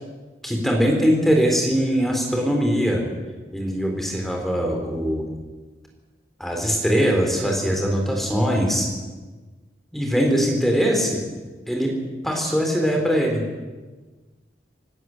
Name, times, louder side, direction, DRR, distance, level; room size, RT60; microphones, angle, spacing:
voice 1, 0.4-3.0 3.5-5.2 6.4-8.9 9.9-11.2 11.7-11.9 12.2-13.4, equal, ahead, 1 dB, 4.0 m, -21 dB
26.0 x 13.0 x 8.0 m, 1.3 s
head